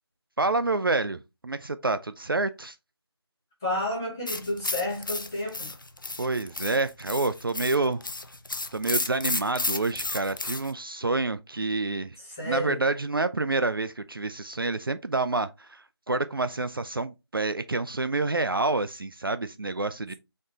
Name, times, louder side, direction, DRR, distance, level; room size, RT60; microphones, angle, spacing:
voice 1, 0.4-2.8 6.2-8.0 8.7-12.2 12.4-20.1, right 3 dB, 55° right, 0.4 m, -28 dB
voice 2, 3.6-5.7 12.2-12.8, left 1 dB, 10° left, 1.0 m, -31 dB
sound 1, 4.3-10.7, left 2 dB, 50° left, 0.5 m, -33 dB
4.2 x 3.8 x 3.1 m
figure-of-eight pair, 175°, 14 cm